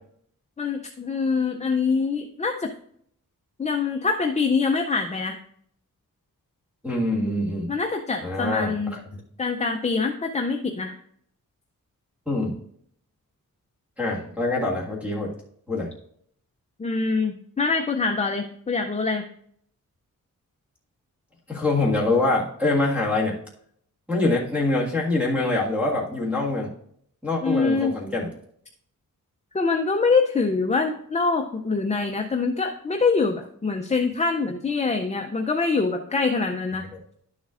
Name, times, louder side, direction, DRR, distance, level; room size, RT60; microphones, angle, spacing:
voice 1, 0.6-2.7 3.6-5.4 7.7-9.0 9.4-10.9 16.8-19.2 27.4-28.0 29.5-36.8, left 4 dB, 20° left, 4 dB, 0.4 m, -24 dB
voice 2, 6.8-7.7 8.2-9.0 12.3-12.5 14.0-15.3 15.7-15.9 21.5-23.3 24.1-26.7 27.2-28.3, left 2 dB, 5° right, -7 dB, 1.7 m, -24 dB
11.0 x 7.3 x 2.5 m, 0.66 s
wide cardioid pair, 180°, 33 cm